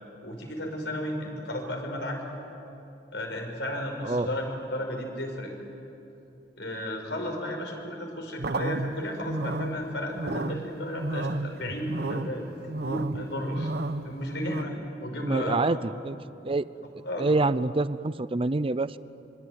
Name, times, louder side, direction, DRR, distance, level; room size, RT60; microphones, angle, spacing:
voice 1, 0.2-2.2 3.1-4.4 4.7-5.5 6.6-13.7 14.0-15.8 17.0-17.3, left 1 dB, 75° left, 2 dB, 5.6 m, -34 dB
sound 1, 8.4-14.6, right 2 dB, 60° right, 1.0 m, -33 dB
voice 2, 15.2-16.2 16.4-16.7 17.2-19.0, right 3 dB, 30° right, 16 dB, 0.6 m, -26 dB
25.5 x 24.5 x 9.4 m, 2.8 s
head